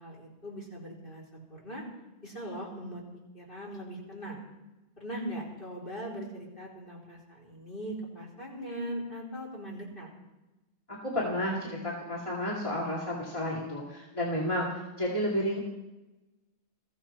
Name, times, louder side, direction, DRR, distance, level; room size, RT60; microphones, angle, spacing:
voice 1, 0.0-1.8 2.2-3.0 3.3-4.4 5.0-10.1, right 1 dB, 50° left, -3 dB, 4.3 m, -40 dB
voice 2, 11.0-14.7 15.0-15.6, left 1 dB, 30° left, -5 dB, 2.5 m, -31 dB
21.5 x 14.5 x 4.5 m, 1.0 s
omnidirectional pair, 1.1 m